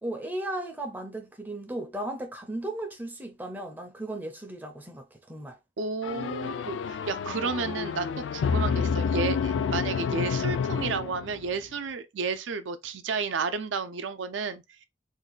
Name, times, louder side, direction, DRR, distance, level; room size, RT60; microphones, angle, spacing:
voice 1, 0.0-5.6, right 1 dB, 10° right, 0.4 m, -36 dB
voice 2, 5.8-14.6, right 4 dB, 85° right, 0.5 m, -32 dB
sound 1, 6.0-11.6, left 6 dB, 80° left, 0.3 m, -29 dB
2.6 x 2.2 x 3.9 m
head